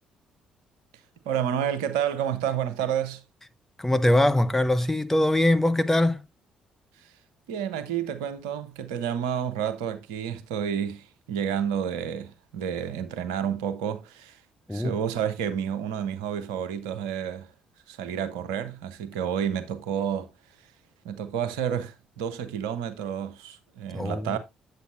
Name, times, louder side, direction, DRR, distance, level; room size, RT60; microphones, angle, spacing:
voice 1, 1.2-3.2 7.5-14.4 14.7-17.5 17.9-20.3 21.0-24.4, right 8 dB, 70° right, 0.8 m, -30 dB
voice 2, 3.8-6.2 14.7-15.0 23.9-24.4, left 1 dB, 10° left, 0.7 m, -22 dB
8.1 x 8.1 x 2.6 m
figure-of-eight pair, 45°, 3 cm